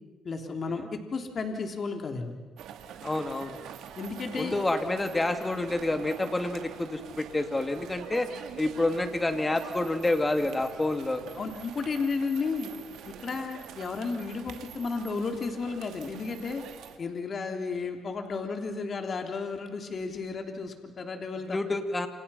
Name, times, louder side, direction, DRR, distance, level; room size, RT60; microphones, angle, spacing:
voice 1, 0.2-2.3 4.0-4.5 11.3-12.7 13.0-16.6 17.0-21.6, left 4 dB, 45° left, 4 dB, 3.3 m, -33 dB
sound 1, 2.6-17.0, right 9 dB, 85° right, 2.2 m, -45 dB
voice 2, 3.0-3.6 4.4-8.3 8.6-11.2 21.5-22.1, left 2 dB, 20° left, 7 dB, 2.7 m, -28 dB
29.0 x 28.0 x 5.8 m, 1.3 s
cardioid pair, 90°, 0 cm